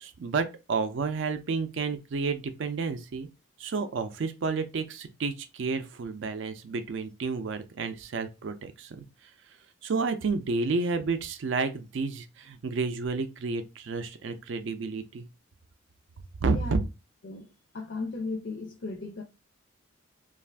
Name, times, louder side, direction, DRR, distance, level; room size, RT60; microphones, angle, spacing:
voice 1, 0.0-3.3 3.6-9.0 9.8-15.2 16.4-16.8, right 4 dB, 60° right, 0.4 m, -30 dB
voice 2, 16.5-16.9 17.2-17.5 17.7-19.2, left 3 dB, 55° left, 0.4 m, -36 dB
2.4 x 2.4 x 3.3 m
head